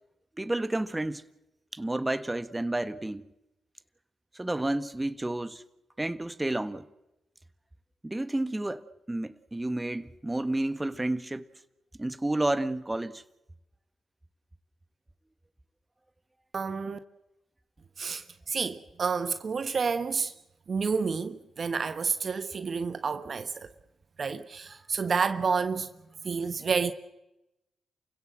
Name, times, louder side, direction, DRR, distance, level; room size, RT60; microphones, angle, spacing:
voice 1, 0.4-1.2 1.7-3.2 4.3-5.6 6.0-6.8 8.0-11.4 12.0-13.2, right 1 dB, 20° right, 1.5 m, -30 dB
voice 2, 16.5-17.0 18.0-20.3 20.7-23.7 24.2-25.9 26.2-26.9, right 5 dB, 55° right, 1.1 m, -29 dB
29.0 x 16.5 x 7.7 m
supercardioid pair, 45°, 0 cm